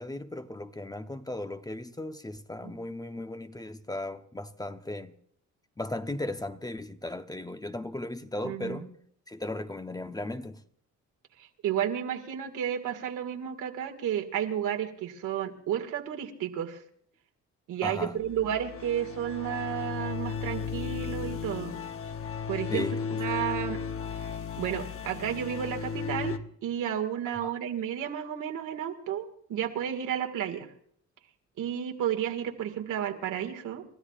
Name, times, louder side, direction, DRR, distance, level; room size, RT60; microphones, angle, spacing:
voice 1, 0.0-5.1 5.8-8.9 9.3-10.6 17.8-18.2 22.7-23.2 27.4-27.5, left 2 dB, 10° left, 0.8 m, -36 dB
voice 2, 8.4-8.8 11.4-16.8 17.7-21.8 22.5-22.9 23.2-23.8 24.2-24.3 24.6-26.4 26.6-30.7 31.6-33.8, right 9 dB, 85° right, 2.0 m, -32 dB
sound 1, 18.2-26.4, left 6 dB, 45° left, 1.0 m, -35 dB
30.0 x 13.0 x 2.5 m
cardioid pair, 90°, 30 cm